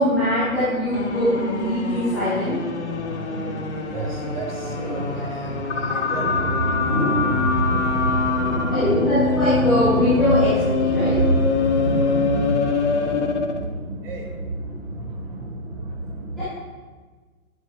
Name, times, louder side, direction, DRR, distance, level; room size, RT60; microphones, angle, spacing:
voice 1, 0.0-2.6 8.7-10.5 10.7-11.1 16.4-16.5, equal, ahead, -18 dB, 0.4 m, -22 dB
voice 2, 0.6-1.2 1.8-16.4, right 1 dB, 40° right, 0 dB, 3.6 m, -27 dB
sound 1, 0.9-13.6, left 4 dB, 50° left, 1.8 m, -24 dB
18.5 x 11.0 x 3.3 m, 1.4 s
figure-of-eight pair, 135°, 43 cm